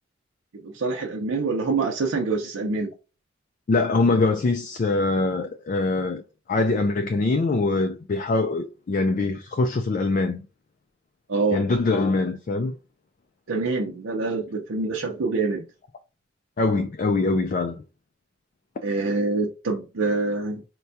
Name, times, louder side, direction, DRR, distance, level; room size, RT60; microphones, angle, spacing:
voice 1, 0.5-2.9 11.3-11.6 13.5-15.6 18.8-20.6, right 3 dB, 80° right, 0.6 m, -25 dB
voice 2, 3.7-6.2 6.5-10.4 11.5-12.7 16.6-17.8, left 3 dB, 40° left, 0.3 m, -23 dB
4.5 x 2.2 x 2.6 m
head